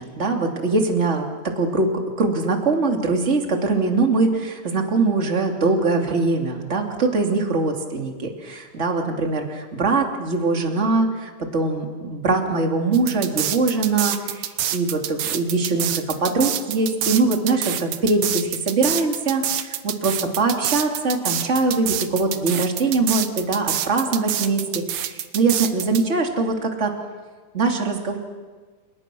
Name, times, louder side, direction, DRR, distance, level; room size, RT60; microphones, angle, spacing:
voice 1, 0.0-1.9 2.2-26.9 27.5-28.2, right 3 dB, 20° right, 2 dB, 2.9 m, -22 dB
sound 1, 12.9-26.0, right 11 dB, 85° right, 2.7 m, -26 dB
30.0 x 29.5 x 6.3 m, 1.4 s
omnidirectional pair, 3.5 m